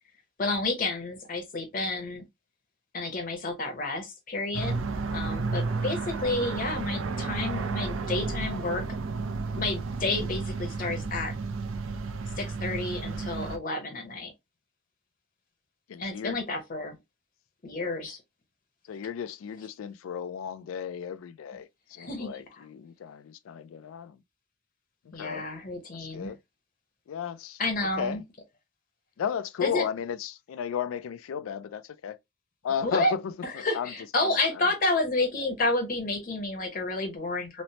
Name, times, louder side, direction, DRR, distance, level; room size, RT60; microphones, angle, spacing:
voice 1, 0.4-2.2 2.9-4.8 5.1-8.8 9.5-11.3 12.4-14.3 16.0-17.0 17.6-18.2 22.0-22.6 25.1-26.3 27.6-28.2 29.6-29.8 32.8-33.1 33.4-37.6, left 2 dB, 45° left, 0.7 m, -30 dB
sound 1, 4.5-13.6, right 4 dB, 80° right, 0.5 m, -32 dB
voice 2, 15.9-16.4 18.8-24.2 25.0-25.5 25.9-26.4 27.1-28.2 29.2-32.2 32.6-33.9 34.2-34.7, left 7 dB, 85° left, 0.3 m, -35 dB
3.1 x 2.0 x 2.6 m
head